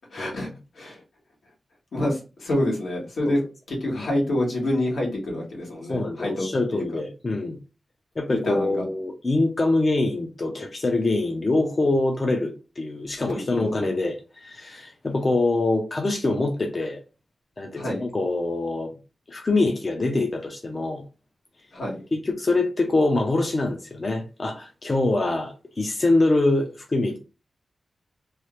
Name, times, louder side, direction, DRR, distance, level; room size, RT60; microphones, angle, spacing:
voice 1, 0.1-1.0 1.9-3.4 3.7-6.9 8.3-8.8 13.3-14.0 17.7-18.0 21.7-22.0, left 1 dB, 80° left, 1.5 m, -27 dB
voice 2, 5.9-7.6 8.2-17.0 17.6-18.9 19.3-21.0 22.1-27.2, left 2 dB, 30° left, 0.5 m, -24 dB
3.1 x 2.4 x 3.0 m
wide cardioid pair, 170°, 0 cm